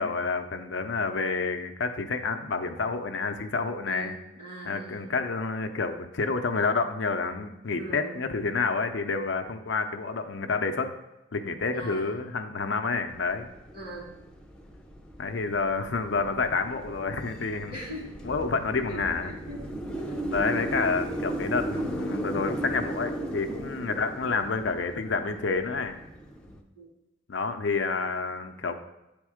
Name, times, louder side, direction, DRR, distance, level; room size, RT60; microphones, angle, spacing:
voice 1, 0.0-4.1 4.6-10.9 11.3-13.5 15.2-17.8 18.2-19.3 20.3-25.9 27.3-28.7, left 4 dB, 65° left, 7 dB, 0.6 m, -29 dB
voice 2, 3.9-5.1 7.7-8.2 11.7-12.1 13.7-14.2 17.7-18.1 18.4-18.5 18.9-19.6 19.9-20.3 23.9-24.0 26.8-26.9, right 1 dB, 45° right, -2 dB, 2.2 m, -41 dB
sound 1, 13.1-26.6, right 1 dB, 5° left, 0.6 m, -36 dB
8.5 x 3.6 x 4.9 m, 0.93 s
head